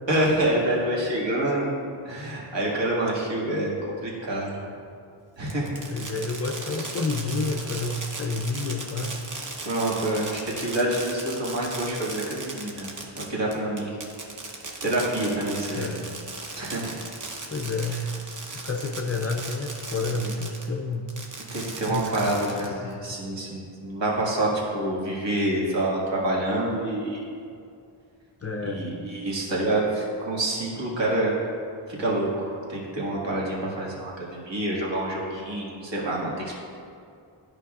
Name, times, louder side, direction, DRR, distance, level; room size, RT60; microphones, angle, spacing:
voice 1, 0.1-1.7 2.1-3.8 4.0-4.7 5.4-6.1 9.6-14.0 14.8-15.9 16.6-17.0 21.5-27.3 28.6-31.4 32.0-36.5, right 1 dB, 60° right, -5 dB, 1.8 m, -27 dB
Fireworks, 5.5-20.7 21.1-22.9, right 3 dB, 40° right, 0.8 m, -37 dB
voice 2, 5.9-9.2 15.7-16.1 17.5-18.0 18.5-21.0 21.9-22.9 28.4-28.9, left 3 dB, 35° left, 2 dB, 0.4 m, -30 dB
12.5 x 5.1 x 2.4 m, 2.4 s
wide cardioid pair, 150°, 49 cm